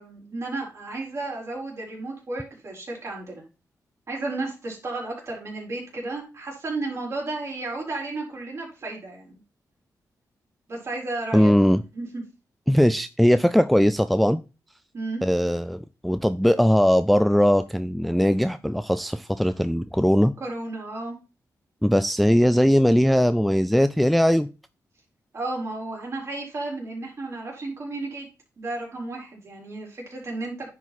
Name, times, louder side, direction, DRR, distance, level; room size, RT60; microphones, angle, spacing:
voice 1, 0.0-3.4 4.1-9.4 10.7-11.5 11.9-12.2 14.9-15.2 20.4-21.2 25.3-28.3 28.6-30.7, right 2 dB, 45° right, -1 dB, 4.1 m, -33 dB
voice 2, 11.3-11.8 12.7-14.4 15.2-20.3 21.8-24.5, equal, ahead, 12 dB, 0.3 m, -20 dB
10.0 x 4.8 x 4.2 m, 0.31 s
wide cardioid pair, 130°, 7 cm